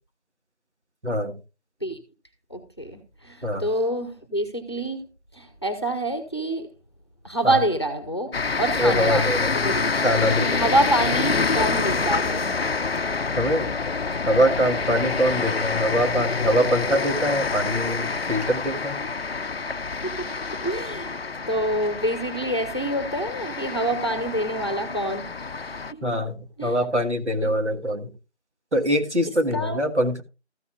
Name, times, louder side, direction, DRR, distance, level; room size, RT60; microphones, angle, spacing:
voice 1, 1.0-1.3 3.4-3.7 7.4-7.6 8.8-9.5 10.0-10.7 13.4-13.7 14.3-19.0 26.0-28.1 28.7-30.2, equal, 80° right, 1.7 m, -23 dB
voice 2, 2.5-5.1 5.3-6.7 7.2-9.2 9.5-9.9 10.6-12.6 20.2-20.3 20.6-21.2 21.5-25.3 25.9-26.0 26.6-26.8 27.4-27.5 29.5-29.8, right 1 dB, 25° left, 1.0 m, -26 dB
sound 1, 8.3-25.9, left 4 dB, 60° left, 0.5 m, -27 dB
14.0 x 9.4 x 2.4 m
figure-of-eight pair, 170°, 34 cm